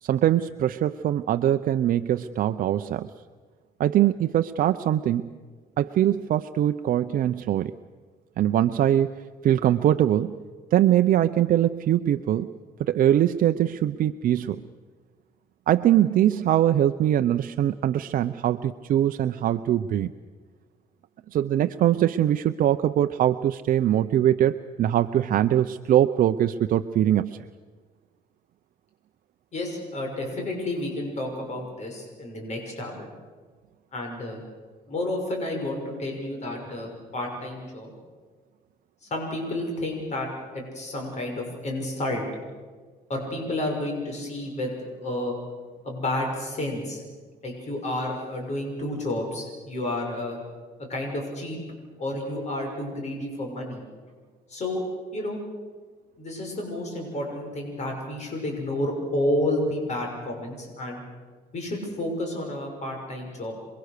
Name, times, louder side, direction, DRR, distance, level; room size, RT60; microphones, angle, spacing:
voice 1, 0.0-3.1 3.8-5.3 5.8-7.7 8.4-9.1 9.4-10.4 10.7-12.5 12.8-14.6 15.7-20.1 21.3-27.5, right 11 dB, 55° right, 8 dB, 0.7 m, -22 dB
voice 2, 29.5-33.1 33.9-34.4 34.9-37.9 39.0-40.3 40.5-42.2 43.1-44.7 45.0-45.3 45.8-47.0 47.4-50.4 50.8-51.6 52.0-53.8 54.5-54.8 55.1-55.4 56.2-61.0 61.5-63.5, left 1 dB, 40° left, 2 dB, 6.2 m, -30 dB
28.0 x 22.0 x 6.7 m, 1.5 s
cardioid pair, 110°, 17 cm